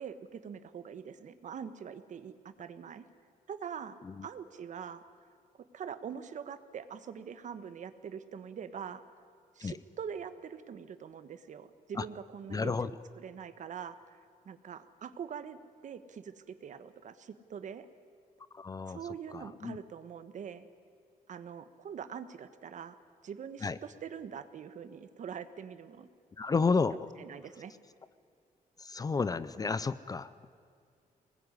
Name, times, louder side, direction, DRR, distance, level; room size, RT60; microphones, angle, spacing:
voice 1, 0.0-3.0 3.5-5.0 5.7-9.0 9.5-12.7 13.2-14.2 14.4-17.9 18.9-20.7 21.3-22.9 23.2-26.1 26.7-26.8 27.2-27.7, right 7 dB, 55° right, 11 dB, 1.4 m, -43 dB
voice 2, 12.5-12.9 18.5-19.0 19.3-19.8 23.6-23.8 26.4-27.1 28.8-30.5, left 4 dB, 25° left, 16 dB, 0.6 m, -32 dB
24.5 x 20.0 x 9.8 m, 2.4 s
wide cardioid pair, 155°, 15 cm